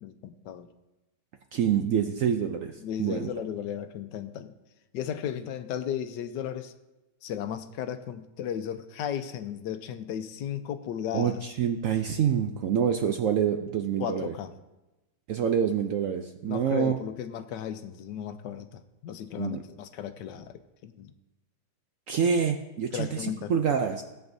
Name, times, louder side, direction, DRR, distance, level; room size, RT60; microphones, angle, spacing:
voice 1, 0.0-0.7 2.8-4.5 4.9-6.7 7.2-11.4 14.0-14.5 16.4-21.1 22.9-23.5, left 9 dB, 85° left, 10 dB, 1.3 m, -35 dB
voice 2, 1.5-3.3 11.1-14.3 15.3-16.9 19.4-19.6 22.1-24.0, right 8 dB, 70° right, 6 dB, 0.8 m, -27 dB
17.0 x 8.0 x 2.7 m, 1.0 s
omnidirectional pair, 1.9 m